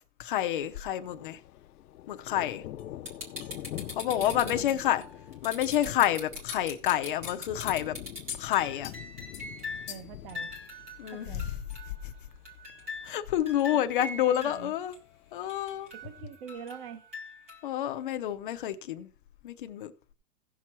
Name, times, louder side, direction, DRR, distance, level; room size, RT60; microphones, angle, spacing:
voice 1, 0.2-1.4 2.1-2.6 3.9-5.0 5.4-7.9 8.4-8.9 11.0-11.4 12.0-12.1 13.0-14.9 15.3-15.9 17.6-19.1 19.4-19.9, left 12 dB, 35° left, 0.6 m, -29 dB
Thunder, 0.6-16.2, left 13 dB, 75° left, 0.7 m, -46 dB
sound 1, 2.8-2.9 3.4-3.5 4.2-4.4 4.7-4.8 5.7-5.8 6.5-6.7 7.3-7.8 8.3-8.4 8.8-9.0 9.3-9.5 9.9-10.2, left 9 dB, 15° left, 0.9 m, -42 dB
sound 2, 3.1-10.0 10.3-12.1 12.5-14.6 14.9-15.0 15.5-17.7 18.1-18.2, left 3 dB, 10° right, 0.4 m, -42 dB
voice 2, 3.8-4.8 9.9-10.7 11.0-11.5 13.7-14.7 15.9-17.0, right 8 dB, 40° right, 1.1 m, -45 dB
16.0 x 6.1 x 4.4 m
supercardioid pair, 170°, 47 cm